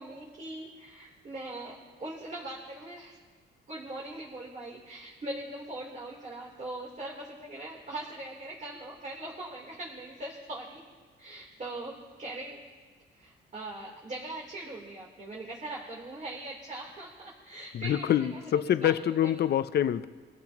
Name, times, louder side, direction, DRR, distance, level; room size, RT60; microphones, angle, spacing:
voice 1, 0.0-3.2 3.7-10.8 11.2-12.6 13.1-18.9 19.2-19.4, right 2 dB, 40° right, 3.6 m, -41 dB
voice 2, 17.8-20.1, left 10 dB, 55° left, 0.6 m, -26 dB
24.0 x 14.5 x 3.0 m
cardioid pair, 90°, 20 cm